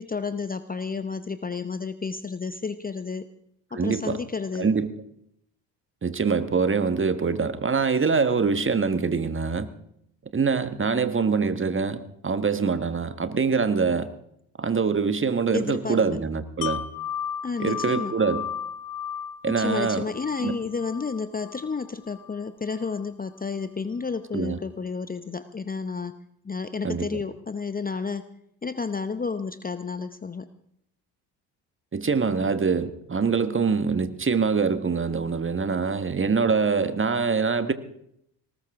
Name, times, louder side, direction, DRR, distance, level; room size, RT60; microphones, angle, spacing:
voice 1, 0.0-3.3 3.7-4.7 15.5-16.2 17.4-18.1 19.6-26.2 26.4-28.3 28.6-30.5, left 5 dB, 20° left, 12 dB, 0.8 m, -31 dB
voice 2, 3.7-4.2 4.6-4.9 6.0-9.7 10.3-14.1 14.6-16.8 17.6-18.4 19.4-20.0 20.4-20.6 24.3-24.6 26.8-27.2 31.9-37.7, right 5 dB, 25° right, 11 dB, 1.5 m, -24 dB
Wind chime, 16.6-22.4 22.8-22.9, left 9 dB, 85° left, 0.7 m, -35 dB
19.5 x 18.5 x 3.7 m, 0.72 s
hypercardioid pair, 50°, 50 cm